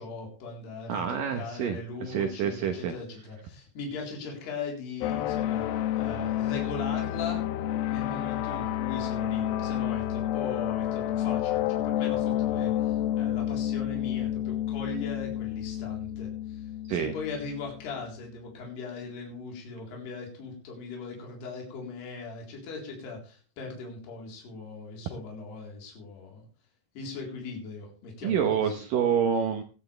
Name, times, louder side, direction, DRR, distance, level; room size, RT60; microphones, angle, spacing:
voice 1, 0.0-5.7 6.0-7.4 7.9-26.4 27.0-28.8, left 4 dB, 60° left, 0 dB, 5.8 m, -39 dB
voice 2, 0.9-2.9 16.9-17.1 28.2-29.6, right 8 dB, 70° right, 6 dB, 2.1 m, -27 dB
sound 1, 5.0-18.1, left 12 dB, 80° left, 2.3 m, -30 dB
18.0 x 12.0 x 3.4 m, 0.36 s
omnidirectional pair, 5.3 m